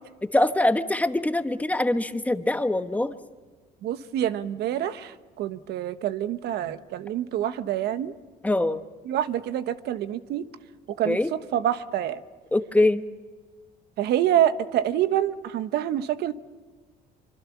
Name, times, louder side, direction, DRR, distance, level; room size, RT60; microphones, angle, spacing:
voice 1, 0.3-3.1 8.4-8.8 11.1-11.3 12.5-13.0, left 2 dB, 10° left, 9 dB, 1.2 m, -23 dB
voice 2, 3.8-8.1 9.1-10.4 11.0-12.2 14.0-16.3, right 11 dB, 75° right, 11 dB, 1.1 m, -26 dB
25.0 x 24.5 x 7.2 m, 1.4 s
cardioid pair, 110°, 17 cm